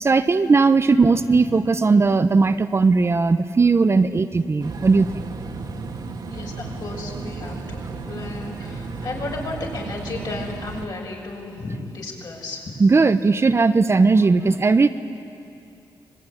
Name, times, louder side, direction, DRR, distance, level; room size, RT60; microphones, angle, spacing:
voice 1, 0.0-5.1 12.8-14.9, right 4 dB, 30° right, 9 dB, 0.8 m, -17 dB
sound 1, 4.6-10.9, right 3 dB, 55° right, 1.8 m, -33 dB
voice 2, 6.3-12.8, left 2 dB, 55° left, -1 dB, 6.8 m, -34 dB
26.0 x 21.5 x 9.9 m, 2.7 s
cardioid pair, 90°, 8 cm